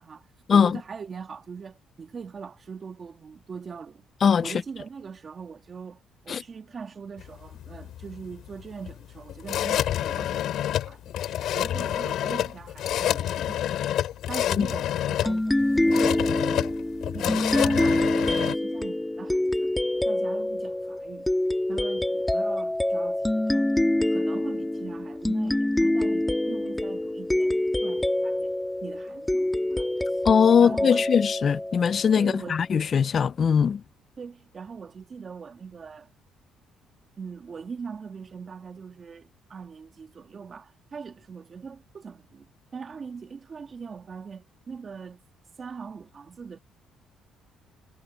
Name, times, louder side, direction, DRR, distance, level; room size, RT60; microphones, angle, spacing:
voice 1, 0.0-4.0 4.4-6.0 6.2-11.0 11.5-13.9 14.3-16.4 17.1-19.7 20.0-21.3 21.7-23.7 24.1-28.5 28.8-30.2 30.6-31.1 32.2-32.6 34.2-36.1 37.2-42.5 42.7-45.2 45.6-46.6, right 5 dB, 35° right, 2.2 m, -41 dB
sound 1, 7.2-18.6, left 11 dB, 70° left, 2.9 m, -28 dB
sound 2, 15.3-32.4, left 1 dB, 5° left, 1.6 m, -26 dB
voice 2, 30.3-33.8, left 7 dB, 40° left, 0.4 m, -20 dB
cardioid pair, 135°, 0 cm